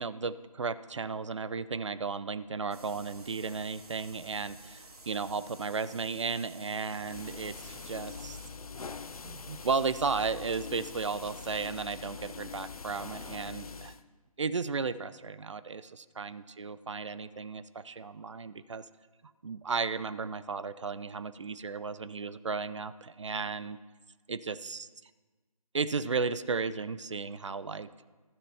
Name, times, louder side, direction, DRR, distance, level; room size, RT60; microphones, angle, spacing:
voice 1, 0.0-8.4 9.2-13.9 14.4-18.8 19.4-23.8 24.3-24.9 25.7-27.9, right 4 dB, 50° right, 15 dB, 0.4 m, -34 dB
sound 1, 2.7-8.5, right 2 dB, 80° right, 1.7 m, -52 dB
sound 2, 7.0-14.0, left 5 dB, 70° left, 0.6 m, -43 dB
12.0 x 6.7 x 5.6 m, 1.3 s
figure-of-eight pair, 160°, 19 cm